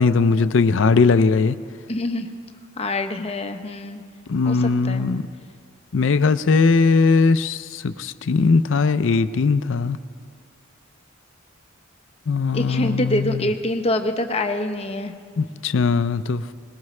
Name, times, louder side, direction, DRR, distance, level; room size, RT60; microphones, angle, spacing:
voice 1, 0.0-1.6 4.3-5.2 5.9-10.0 12.3-13.5 15.4-16.4, left 4 dB, 65° left, 14 dB, 0.5 m, -19 dB
voice 2, 1.9-2.3 2.8-4.0 4.4-5.1 12.5-15.1, left 1 dB, 30° left, 6 dB, 0.8 m, -25 dB
20.5 x 20.0 x 3.2 m, 2.1 s
head